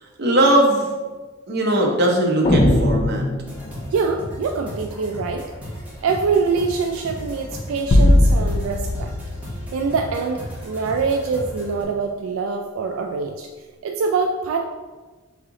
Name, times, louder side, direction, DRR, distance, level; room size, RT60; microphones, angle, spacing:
voice 1, 0.2-0.9 1.5-3.2, right 1 dB, 55° right, 0 dB, 0.8 m, -19 dB
sound 1, 2.4-4.1, left 1 dB, 30° left, 0.4 m, -20 dB
sound 2, 3.5-11.8, equal, 5° right, 1.2 m, -35 dB
voice 2, 3.9-5.5 6.0-9.1 9.7-13.5 13.8-14.6, right 4 dB, 85° right, 3 dB, 0.3 m, -24 dB
sound 3, 7.9-10.5, left 1 dB, 80° left, 0.6 m, -19 dB
3.6 x 3.3 x 3.8 m, 1.3 s
head